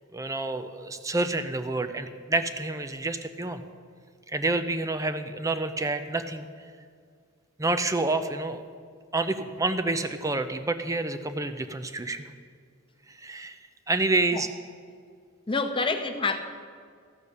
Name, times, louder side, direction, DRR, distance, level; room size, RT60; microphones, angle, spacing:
voice 1, 0.1-3.6 4.3-6.5 7.6-8.6 9.1-12.3 13.1-13.6 13.9-14.5, right 2 dB, 15° right, 10 dB, 0.6 m, -28 dB
voice 2, 15.5-16.4, left 3 dB, 25° left, 6 dB, 0.8 m, -27 dB
13.5 x 6.7 x 8.5 m, 2.1 s
head